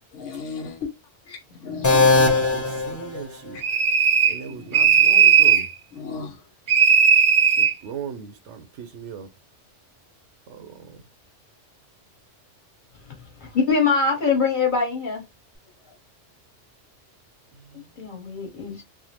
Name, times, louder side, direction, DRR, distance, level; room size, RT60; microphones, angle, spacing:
voice 1, 0.1-0.9 1.3-2.4 3.5-3.6 4.5-4.9 5.9-6.4, left 5 dB, 80° left, 1.1 m, -35 dB
sound 1, 1.8-3.7, left 3 dB, 20° left, 0.5 m, -20 dB
voice 2, 2.3-3.6 4.3-5.7 7.6-9.3 10.5-11.0, right 7 dB, 75° right, 1.0 m, -38 dB
sound 2, 3.6-4.4 4.7-5.7 6.7-7.7, right 7 dB, 50° right, 0.7 m, -16 dB
voice 3, 13.4-15.2 18.0-18.8, left 5 dB, 40° left, 1.3 m, -23 dB
3.5 x 2.0 x 2.9 m
omnidirectional pair, 1.3 m